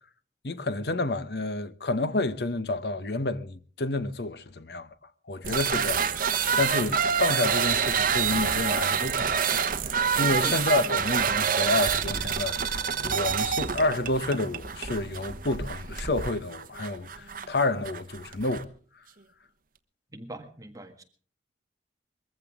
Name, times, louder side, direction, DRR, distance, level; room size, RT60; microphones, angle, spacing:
voice 1, 0.4-4.9 5.3-6.1 6.6-9.3 9.9-18.7, left 2 dB, 60° left, 1.0 m, -29 dB
sound 1, 5.4-18.6, right 7 dB, 50° right, 1.1 m, -27 dB
voice 2, 20.1-21.0, right 1 dB, 20° right, 1.7 m, -40 dB
22.0 x 15.0 x 3.6 m
head